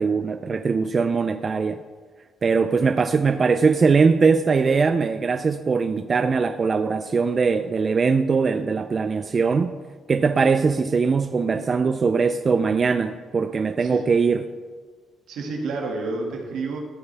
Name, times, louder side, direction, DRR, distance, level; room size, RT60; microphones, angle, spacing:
voice 1, 0.0-1.8 2.4-9.7 10.1-14.5, right 5 dB, 30° right, 9 dB, 0.3 m, -21 dB
voice 2, 15.3-16.8, right 3 dB, 80° right, 0 dB, 1.9 m, -29 dB
13.5 x 8.9 x 3.3 m, 1.5 s
cardioid pair, 150°, 0 cm